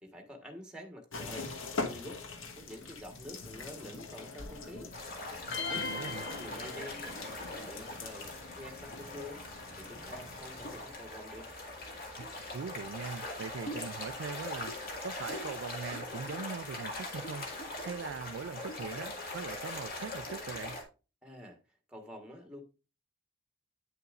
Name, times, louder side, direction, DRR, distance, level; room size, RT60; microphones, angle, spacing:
voice 1, 0.0-1.5 1.8-2.2 2.6-4.9 5.3-9.4 9.8-11.5 21.2-21.6 21.9-22.6, left 1 dB, 5° right, 1.3 m, -48 dB
sound 1, 1.1-10.8, left 3 dB, 80° left, 1.3 m, -43 dB
sound 2, 4.9-20.8, left 2 dB, 45° left, 2.1 m, -41 dB
sound 3, 5.5-7.3, left 4 dB, 65° left, 1.1 m, -39 dB
voice 2, 5.7-6.3 12.2-12.3 12.5-17.5 17.9-20.8, right 6 dB, 70° right, 0.4 m, -41 dB
9.2 x 6.7 x 2.4 m
head